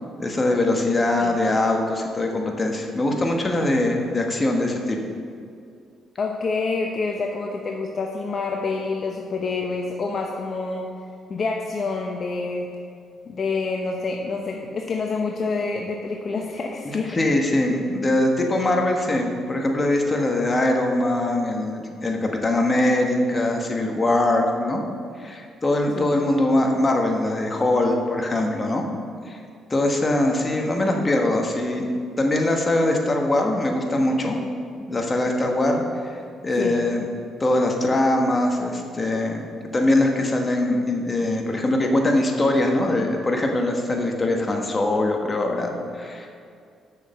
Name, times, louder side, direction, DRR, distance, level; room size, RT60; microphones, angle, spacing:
voice 1, 0.2-5.0 17.1-24.8 25.2-28.8 29.2-29.4 29.7-31.9 32.2-34.4 34.9-37.1 37.4-39.4 39.7-46.4, left 1 dB, 25° left, 2 dB, 1.4 m, -22 dB
voice 2, 6.2-10.9 11.3-12.7 13.3-17.3 25.9-26.1 36.6-36.8, left 4 dB, 50° left, 1 dB, 0.8 m, -27 dB
6.9 x 6.5 x 7.0 m, 2.3 s
cardioid pair, 90°, 0 cm